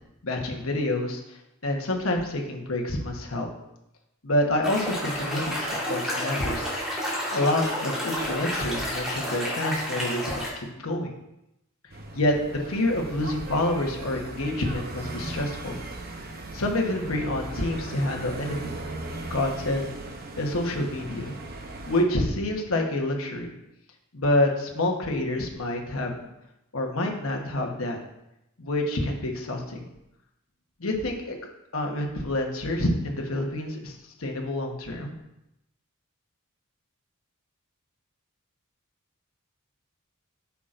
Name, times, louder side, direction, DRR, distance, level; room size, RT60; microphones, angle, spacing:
voice 1, 0.2-1.2 1.6-3.5 4.2-6.7 7.2-10.4 10.8-11.1 12.1-15.8 16.5-18.7 19.3-19.8 20.4-21.3 21.9-23.5 24.1-26.1 26.7-28.0 28.6-29.8 30.8-31.4 31.7-35.2, left 1 dB, 70° left, 2 dB, 1.2 m, -27 dB
sound 1, 4.6-10.5, equal, 5° right, 2.0 m, -30 dB
sound 2, 11.9-22.0, right 2 dB, 45° right, 0.7 m, -38 dB
8.2 x 5.8 x 2.6 m, 0.87 s
head